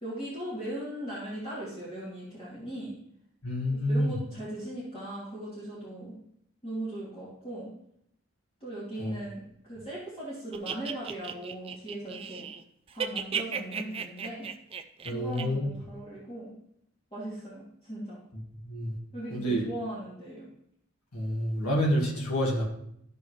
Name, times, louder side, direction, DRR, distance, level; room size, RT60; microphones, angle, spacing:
voice 1, 0.0-2.9 3.6-6.1 6.6-7.7 8.6-12.4 12.9-14.5 15.1-16.5 17.1-18.2 19.1-20.5, right 1 dB, 25° left, -9 dB, 2.5 m, -38 dB
voice 2, 3.4-4.2 9.0-9.1 15.1-15.7 18.7-18.9 19.3-19.7 21.1-22.7, equal, 85° left, -3 dB, 1.8 m, -28 dB
sound 1, 10.5-12.6 12.9-15.4, right 7 dB, 25° right, 0.3 m, -35 dB
12.5 x 5.5 x 3.1 m, 0.73 s
head